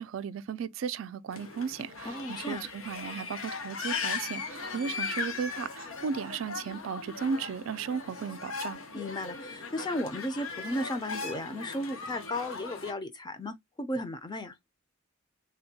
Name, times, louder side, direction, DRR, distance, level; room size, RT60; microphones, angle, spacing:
voice 1, 0.0-8.8, right 6 dB, 70° right, 0.3 m, -35 dB
sound 1, 1.3-12.9, left 4 dB, 85° left, 0.9 m, -38 dB
voice 2, 2.0-2.7 8.9-14.5, left 1 dB, 20° left, 0.5 m, -35 dB
3.3 x 2.2 x 2.7 m
head